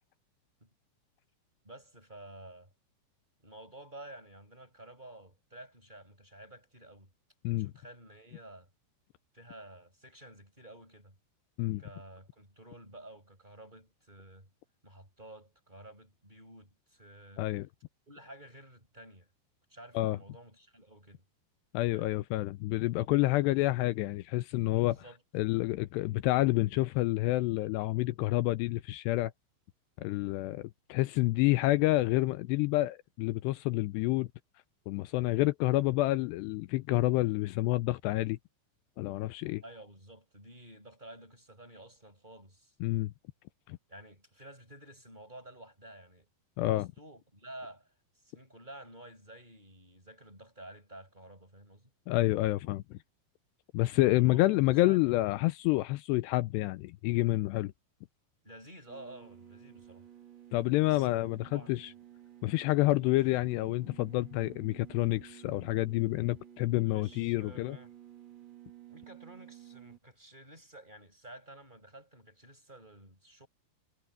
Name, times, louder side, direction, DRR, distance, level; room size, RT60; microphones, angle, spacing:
voice 1, 1.6-2.7 3.4-7.1 7.6-8.7 9.3-11.1 11.8-14.5 14.8-17.5 18.1-19.3 19.7-21.2 21.9-22.2 24.8-25.2 39.6-42.7 43.9-46.3 46.6-47.9 48.2-51.9 54.0-55.2 58.4-60.0 60.8-61.8 66.8-67.9 68.9-73.5, right 1 dB, 10° right, 6.2 m, -51 dB
voice 2, 21.7-25.0 25.3-29.3 30.0-34.3 34.9-38.4 39.0-39.6 42.8-43.1 43.7-43.8 46.6-46.9 52.1-53.0 53.7-57.7 60.5-61.9 62.4-67.8, left 18 dB, 85° left, 2.7 m, -28 dB
sound 1, 58.9-70.0, right 11 dB, 40° right, 1.9 m, -53 dB
omnidirectional pair, 5.0 m